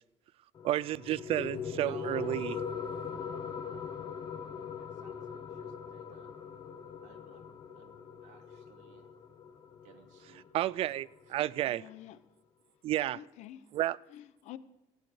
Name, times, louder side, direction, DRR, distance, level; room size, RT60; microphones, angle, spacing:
sound 1, 0.6-11.6, left 7 dB, 40° left, 1.2 m, -41 dB
voice 1, 0.6-2.6 10.5-11.8 12.8-13.2 13.7-14.0, right 13 dB, 50° right, 0.4 m, -31 dB
voice 2, 1.7-2.4 3.1-4.0 4.8-6.3 7.0-9.1 9.8-10.7 11.2-11.4 11.6-11.7, right 8 dB, 80° right, 2.1 m, -57 dB
voice 3, 11.6-12.2 13.1-13.7 14.1-14.6, left 12 dB, 70° left, 0.8 m, -48 dB
15.5 x 9.5 x 5.0 m
cardioid pair, 145°, 12 cm